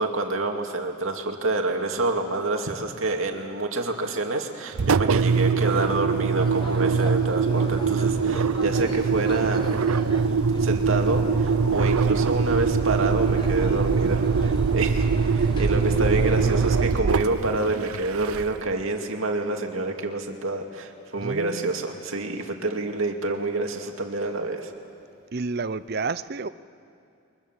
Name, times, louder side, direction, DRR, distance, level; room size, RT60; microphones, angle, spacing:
voice 1, 0.0-9.7 10.6-24.7, right 2 dB, 75° right, 3 dB, 2.4 m, -27 dB
Engine, 4.7-18.7, right 5 dB, 90° right, 0.6 m, -23 dB
sound 1, 6.4-16.8, left 1 dB, 20° left, 1.3 m, -41 dB
voice 2, 21.2-21.8 25.3-26.5, right 4 dB, 45° right, 14 dB, 0.6 m, -30 dB
29.5 x 23.0 x 7.5 m, 2.5 s
head